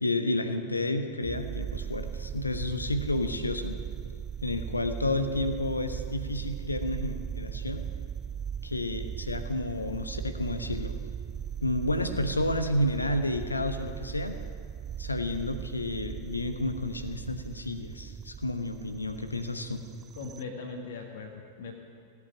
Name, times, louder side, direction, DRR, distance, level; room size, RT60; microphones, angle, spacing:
voice 1, 0.0-3.8 4.4-7.8 8.6-10.9 11.6-14.4 15.0-19.8, left 1 dB, 80° left, 9 dB, 1.0 m, -31 dB
sound 1, 1.2-20.4, right 8 dB, 25° right, 0.4 m, -38 dB
voice 2, 20.1-21.8, left 4 dB, 55° left, 2 dB, 1.7 m, -40 dB
17.5 x 8.5 x 9.9 m, 2.3 s
figure-of-eight pair, 90°, 0 cm